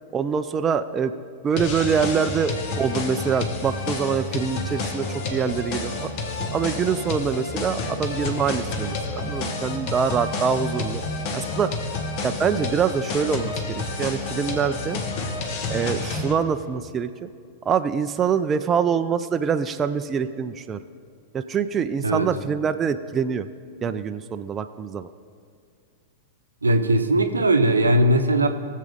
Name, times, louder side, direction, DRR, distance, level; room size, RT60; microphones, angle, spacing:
voice 1, 0.1-1.1 1.4-6.1 6.5-11.0 11.3-11.7 12.2-15.0 15.7-17.3 17.7-20.8 21.3-23.5 23.8-25.1, right 6 dB, 25° right, 9 dB, 0.4 m, -25 dB
sound 1, 1.6-16.3, left 3 dB, 50° left, 1.2 m, -29 dB
voice 2, 26.6-28.5, right 1 dB, 85° right, 7 dB, 0.8 m, -19 dB
20.0 x 7.4 x 3.6 m, 2.3 s
figure-of-eight pair, 100°, 0 cm